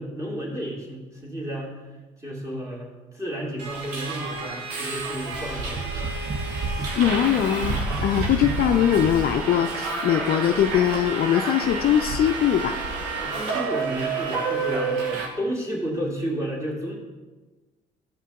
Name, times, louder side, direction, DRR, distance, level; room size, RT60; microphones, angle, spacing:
voice 1, 0.0-1.8 2.2-2.9 3.1-6.0 13.2-17.0, equal, 15° right, -4 dB, 2.2 m, -32 dB
Subway metro underground, 3.6-15.3, right 4 dB, 80° right, 1.1 m, -30 dB
sound 1, 5.0-9.3, right 2 dB, 35° right, 0.7 m, -33 dB
voice 2, 7.0-12.9, left 10 dB, 50° left, 8 dB, 0.4 m, -22 dB
12.0 x 5.6 x 2.4 m, 1.3 s
hypercardioid pair, 55°, 20 cm